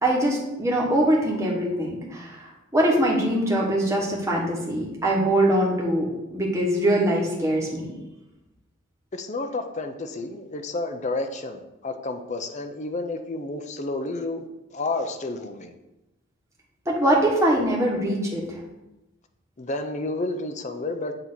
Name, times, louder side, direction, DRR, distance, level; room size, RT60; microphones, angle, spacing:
voice 1, 0.0-7.9 16.8-18.6, right 1 dB, 15° right, -3 dB, 1.2 m, -23 dB
voice 2, 9.1-14.5 14.7-15.7 19.6-21.1, left 2 dB, 35° left, 6 dB, 0.5 m, -30 dB
7.8 x 2.8 x 6.0 m, 0.98 s
head